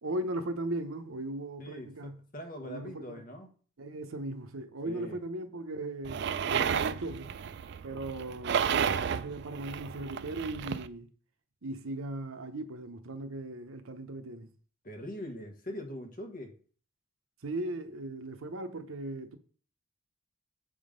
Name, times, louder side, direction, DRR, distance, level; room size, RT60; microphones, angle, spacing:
voice 1, 0.0-2.1 2.6-3.2 3.8-7.3 7.8-11.1 11.6-14.5 17.4-19.4, right 2 dB, 80° right, 0.8 m, -38 dB
voice 2, 1.6-3.5 4.8-5.2 14.8-16.5, equal, 40° left, 1.3 m, -42 dB
sound 1, 6.0-10.9, right 7 dB, 55° right, 0.3 m, -32 dB
7.2 x 3.7 x 5.1 m
head